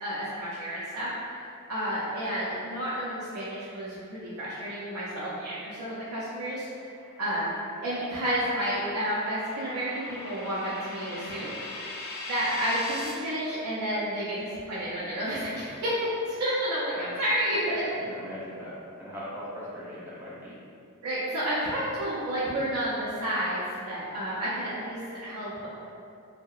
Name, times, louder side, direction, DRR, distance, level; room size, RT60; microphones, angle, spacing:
voice 1, 0.0-6.7 7.2-7.5 7.8-11.6 12.3-17.8 21.0-25.7, equal, 85° right, -10 dB, 0.5 m, -30 dB
sound 1, 6.3-13.1, left 2 dB, 60° left, 0.4 m, -41 dB
voice 2, 18.0-20.5, equal, 10° right, -9 dB, 0.5 m, -40 dB
2.7 x 2.0 x 2.3 m, 2.5 s
head